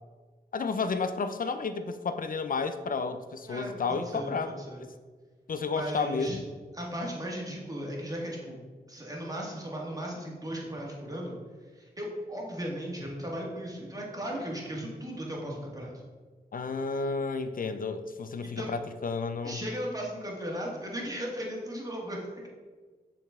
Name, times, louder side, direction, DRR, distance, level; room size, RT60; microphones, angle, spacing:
voice 1, 0.5-4.6 5.5-6.4 16.5-19.6, left 4 dB, 55° left, 10 dB, 0.5 m, -31 dB
voice 2, 3.5-4.8 5.7-6.4 6.7-8.6 8.9-11.4 11.7-16.0 18.6-18.7 19.4-22.5, equal, 20° right, -2 dB, 1.7 m, -36 dB
6.7 x 4.0 x 3.6 m, 1.4 s
cardioid pair, 55°, 17 cm